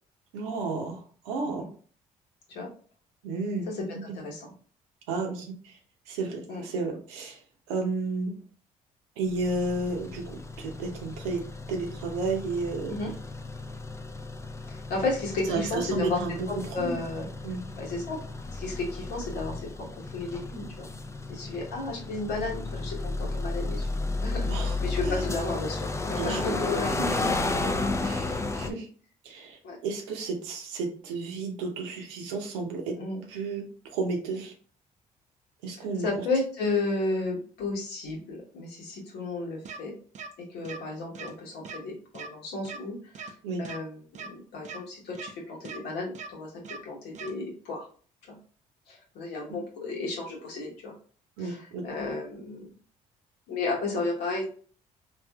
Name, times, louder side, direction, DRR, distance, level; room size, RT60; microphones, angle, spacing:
voice 1, 0.3-1.7 3.2-3.7 5.1-5.8 6.1-7.4 7.7-8.3 9.2-12.9 15.5-17.0 17.4-17.6 24.5-24.8 25.1-25.2 26.1-26.6 26.8-27.2 28.0-28.9 29.2-33.0 33.3-33.6 33.9-34.5 35.6-36.1 43.4-43.6 51.4-51.8, right 3 dB, 85° right, 3 dB, 0.7 m, -32 dB
voice 2, 3.7-4.5 6.5-6.6 12.9-13.1 14.7-16.2 16.5-17.3 17.8-18.2 18.5-20.9 21.3-23.9 24.2-26.9 27.6-27.9 28.6-28.8 29.6-29.8 33.0-33.2 35.8-39.9 40.4-47.9 48.3-48.4 48.9-50.9 51.4-52.7 53.5-54.4, left 3 dB, 75° left, -2 dB, 1.2 m, -33 dB
sound 1, 9.3-28.7, left 3 dB, 15° left, 0.4 m, -33 dB
sound 2, 39.6-39.8 40.1-40.3 40.6-40.8 41.1-41.3 41.6-41.8 42.1-42.3 42.6-42.8 43.1-43.3 43.6-43.8 44.1-44.3 44.6-44.8 45.1-45.3 45.6-45.8 46.1-46.3 46.6-46.8 47.1-47.3, right 5 dB, 45° right, 0.5 m, -39 dB
3.3 x 2.5 x 2.3 m, 0.42 s
hypercardioid pair, 55°, 17 cm